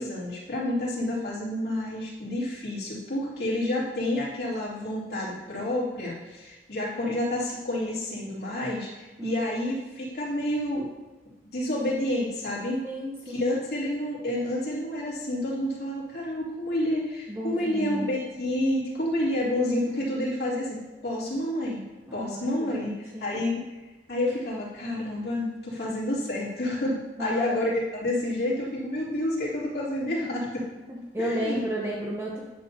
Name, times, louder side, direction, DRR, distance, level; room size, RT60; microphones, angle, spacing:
voice 1, 0.0-10.9 11.5-12.8 13.2-21.8 22.1-23.6 24.1-30.6 31.2-31.6, left 1 dB, 65° left, -7 dB, 2.8 m, -29 dB
voice 2, 9.2-9.7 12.8-13.5 17.3-18.1 22.1-23.4 27.2-27.5 30.9-32.4, equal, 15° right, -4 dB, 0.8 m, -32 dB
11.0 x 6.8 x 2.8 m, 1.1 s
head